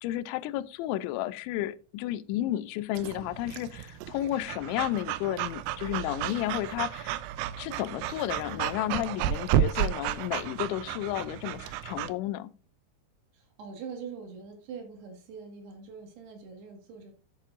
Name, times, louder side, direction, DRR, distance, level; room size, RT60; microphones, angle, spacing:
voice 1, 0.0-7.2 7.6-12.5, left 14 dB, 85° left, 2.9 m, -32 dB
Breathing / Dog, 3.0-12.1, right 11 dB, 85° right, 2.3 m, -32 dB
voice 2, 13.3-17.1, right 6 dB, 65° right, 3.5 m, -43 dB
13.0 x 7.4 x 2.5 m
omnidirectional pair, 5.3 m